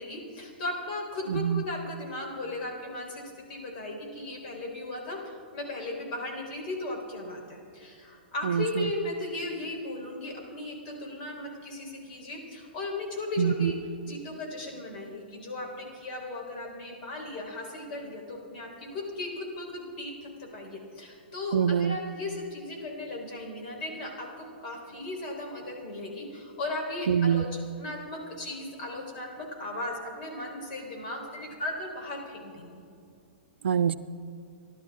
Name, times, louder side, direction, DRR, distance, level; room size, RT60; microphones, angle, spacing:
voice 1, 0.0-13.8 14.0-32.8, left 2 dB, 55° left, 1 dB, 4.1 m, -36 dB
voice 2, 1.3-1.6 8.4-8.9 13.4-13.7 21.5-22.0 27.1-27.4 33.6-34.0, right 8 dB, 85° right, 13 dB, 0.6 m, -25 dB
27.5 x 11.5 x 3.7 m, 2.5 s
hypercardioid pair, 125°, 6 cm